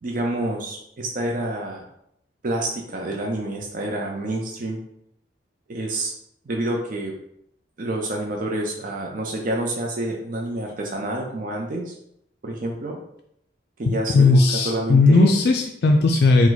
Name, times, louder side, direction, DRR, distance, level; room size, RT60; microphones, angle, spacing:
voice 1, 0.0-1.8 2.4-4.8 5.7-6.1 6.5-7.1 7.8-11.9 12.4-13.0 13.8-14.4 14.6-15.3, right 1 dB, 45° right, 1 dB, 0.5 m, -28 dB
voice 2, 13.9-16.5, left 3 dB, 55° left, 3 dB, 0.4 m, -17 dB
4.7 x 2.2 x 3.9 m, 0.75 s
head